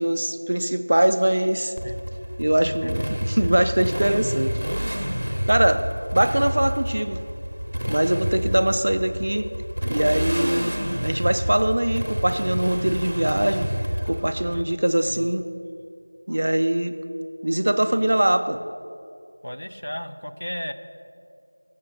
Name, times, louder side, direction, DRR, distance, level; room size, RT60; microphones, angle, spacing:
voice 1, 0.0-1.7 2.4-4.6 5.5-5.9 6.1-7.2 7.9-9.5 9.9-10.8 11.0-13.7 14.1-15.5 16.3-17.0 17.4-18.6, right 1 dB, 40° right, 9 dB, 0.3 m, -22 dB
Motorcycle, 1.8-14.6, equal, 80° right, 0.6 m, -29 dB
voice 2, 7.8-8.2 14.5-15.3 19.4-20.7, equal, 80° left, 8 dB, 0.5 m, -35 dB
7.3 x 6.2 x 6.4 m, 2.5 s
figure-of-eight pair, 175°, 0 cm